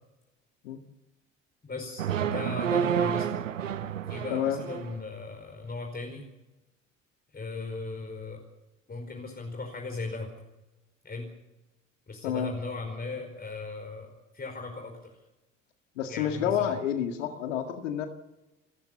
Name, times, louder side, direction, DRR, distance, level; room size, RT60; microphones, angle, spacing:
voice 1, 1.6-3.3 4.1-6.2 7.3-8.4 8.9-10.3 11.0-11.3 12.1-15.1 16.1-16.8, left 3 dB, 25° left, 3 dB, 5.1 m, -38 dB
sound 1, 2.0-5.0, right 8 dB, 85° right, 1.0 m, -29 dB
voice 2, 4.3-4.6 12.2-12.5 16.0-18.1, left 9 dB, 75° left, 5 dB, 2.1 m, -29 dB
29.5 x 15.0 x 7.0 m, 1.0 s
figure-of-eight pair, 55°, 38 cm